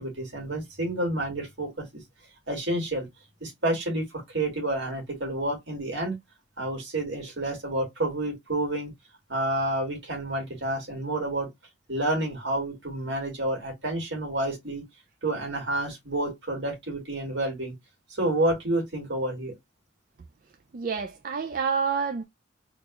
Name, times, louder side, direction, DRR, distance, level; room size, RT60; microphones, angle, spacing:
voice 1, 0.0-1.9 2.5-3.1 3.4-6.2 6.6-8.9 9.3-11.5 11.9-14.8 15.2-17.7 18.1-19.5, right 1 dB, 65° right, 2.0 m, -29 dB
voice 2, 20.7-22.2, right 6 dB, 45° right, 0.4 m, -28 dB
3.9 x 2.4 x 2.9 m
head